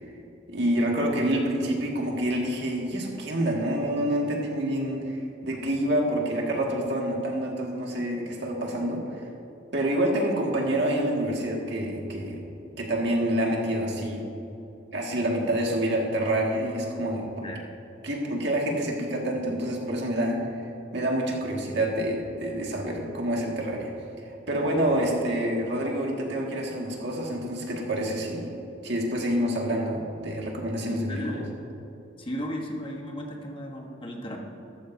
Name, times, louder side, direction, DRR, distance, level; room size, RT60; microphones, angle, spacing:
voice 1, 0.5-9.2 9.7-12.4 12.8-14.3 14.9-17.5 18.0-20.4 20.9-23.9 24.5-28.5 28.8-31.4, right 1 dB, 60° right, -1 dB, 1.9 m, -27 dB
voice 2, 24.7-25.0 30.9-31.4 32.2-34.4, equal, 30° left, 1 dB, 1.3 m, -36 dB
14.0 x 13.5 x 2.7 m, 2.9 s
head